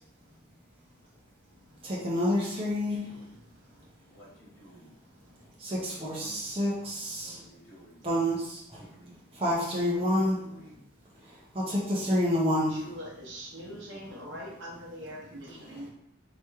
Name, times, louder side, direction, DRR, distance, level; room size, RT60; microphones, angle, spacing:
voice 1, 1.8-3.1 5.6-7.4 8.0-8.8 9.3-10.4 11.5-12.8, equal, 25° right, -6 dB, 0.8 m, -28 dB
voice 2, 4.1-4.9 6.1-6.4 7.2-8.0 8.7-9.2 9.9-10.8 13.9-14.5 15.1-15.9, equal, 85° left, -5 dB, 1.1 m, -53 dB
voice 3, 12.7-15.9, equal, 65° right, -4 dB, 0.9 m, -42 dB
3.1 x 2.9 x 3.6 m, 0.76 s
head